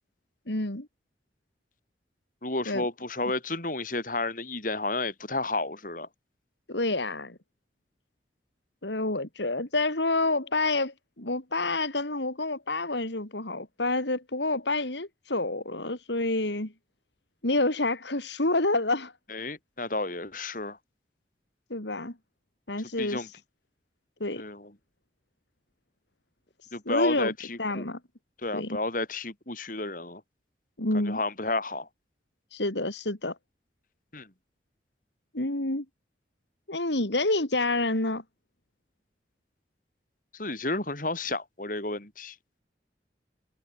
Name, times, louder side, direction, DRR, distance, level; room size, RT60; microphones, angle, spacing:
voice 1, 0.5-0.9 2.7-2.9 6.7-7.4 8.8-16.7 17.4-19.1 21.7-22.1 22.7-23.3 24.2-24.4 26.9-27.3 27.6-28.0 28.5-28.8 30.8-31.2 32.5-33.4 35.3-35.9 36.7-38.2, left 2 dB, 75° left, 3.5 m, -28 dB
voice 2, 2.4-6.1 19.3-20.8 23.0-23.3 24.4-24.7 26.7-27.9 28.4-30.2 30.9-31.9 34.1-34.3 40.3-42.4, left 2 dB, 45° left, 4.8 m, -31 dB
head